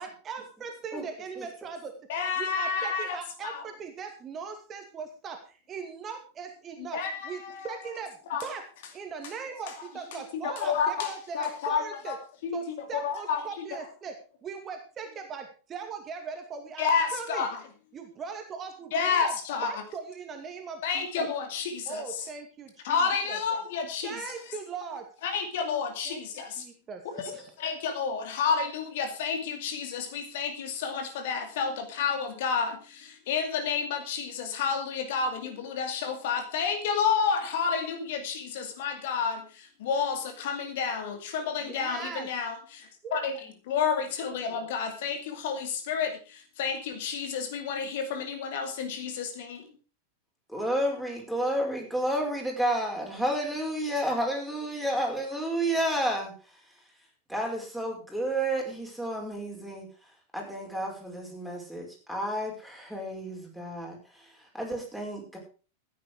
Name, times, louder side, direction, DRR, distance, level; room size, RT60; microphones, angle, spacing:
voice 1, 0.0-1.9 2.4-7.0 7.2-8.2 8.4-8.6 8.9-12.2 12.5-17.5 17.9-19.3 19.7-21.3 21.9-23.4 24.0-25.1 26.1-26.2 26.6-27.5 41.6-42.3 43.0-43.2 44.5-44.7, right 6 dB, 25° right, 5 dB, 2.3 m, -40 dB
voice 2, 2.1-3.2 3.4-3.6 6.8-7.7 8.3-8.5 10.1-12.2 12.4-13.4 13.7-13.8 16.8-17.6 18.9-19.7 20.8-22.3 22.8-24.2 25.2-26.6 27.0-49.7, left 6 dB, 55° left, 7 dB, 2.3 m, -30 dB
voice 3, 50.5-56.3 57.3-59.9 60.3-65.4, right 1 dB, ahead, -1 dB, 5.3 m, -31 dB
14.0 x 10.0 x 4.8 m, 0.36 s
figure-of-eight pair, 90°, 0 cm